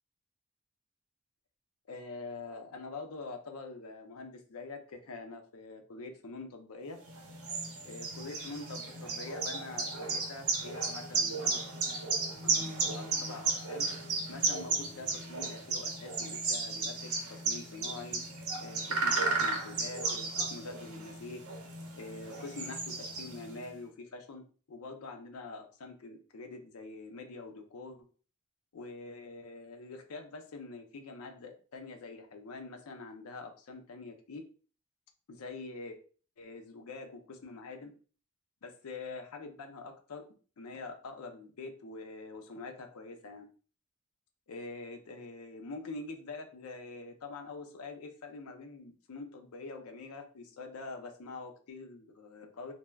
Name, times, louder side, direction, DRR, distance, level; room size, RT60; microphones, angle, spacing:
voice 1, 1.9-7.0 7.8-11.6 12.4-13.9 14.3-18.2 18.6-21.4 22.0-28.0 28.7-34.4 35.3-36.0 36.4-37.9 38.6-40.2 40.6-43.5 44.5-52.7, left 3 dB, 90° left, 5 dB, 0.5 m, -45 dB
sound 1, 7.0-23.6, right 3 dB, 80° right, 0.7 m, -34 dB
3.3 x 2.0 x 2.2 m, 0.40 s
head